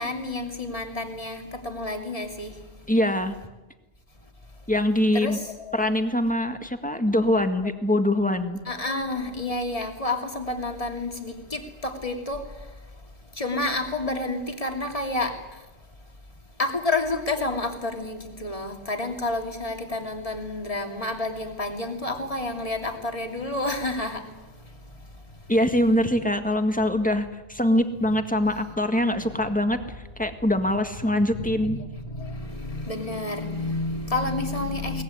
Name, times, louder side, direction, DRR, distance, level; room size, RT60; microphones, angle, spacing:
voice 1, 0.0-2.7 5.1-5.9 7.6-7.7 8.6-15.7 16.6-25.5 29.1-29.3 31.3-35.0, left 2 dB, 30° left, 4 dB, 2.8 m, -30 dB
voice 2, 2.9-3.3 4.7-5.4 5.7-8.6 25.5-29.8 30.2-31.8, left 1 dB, 5° left, 7 dB, 1.8 m, -23 dB
23.0 x 19.0 x 9.8 m, 1.1 s
omnidirectional pair, 1.1 m